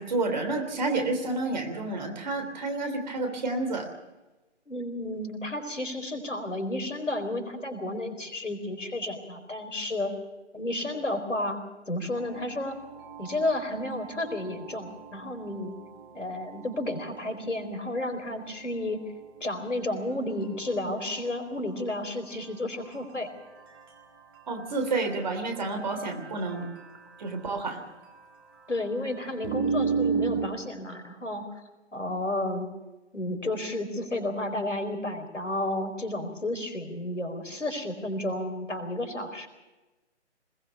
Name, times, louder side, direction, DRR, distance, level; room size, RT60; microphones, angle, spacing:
voice 1, 0.0-3.9 24.5-26.7 27.2-27.8, right 3 dB, 40° right, 5 dB, 3.3 m, -30 dB
voice 2, 4.7-10.1 10.5-11.6 11.9-12.8 13.2-15.7 16.1-19.0 19.4-23.3 28.7-31.5 31.9-32.7 33.1-39.5, left 1 dB, 85° left, 6 dB, 4.4 m, -32 dB
sound 1, 12.2-30.5, right 5 dB, 20° right, 1.9 m, -37 dB
20.5 x 19.5 x 6.9 m, 1.1 s
figure-of-eight pair, 155°, 36 cm